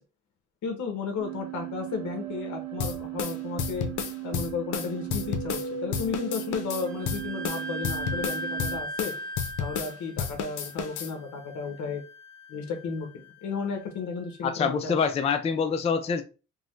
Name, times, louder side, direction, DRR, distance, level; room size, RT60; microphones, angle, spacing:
voice 1, 0.6-3.9 4.2-9.1 9.6-12.0 12.5-15.0, left 5 dB, 70° left, 0.9 m, -33 dB
sound 1, 1.2-8.8, right 11 dB, 60° right, 0.8 m, -37 dB
sound 2, 2.8-5.7 5.9-9.9 10.2-11.1, left 7 dB, 90° left, 0.6 m, -32 dB
Wind instrument woodwind instrument, 6.9-14.3, equal, 25° right, 0.6 m, -39 dB
voice 2, 14.4-16.2, left 6 dB, 20° left, 0.4 m, -25 dB
3.7 x 2.1 x 3.1 m
cardioid pair, 90°, 30 cm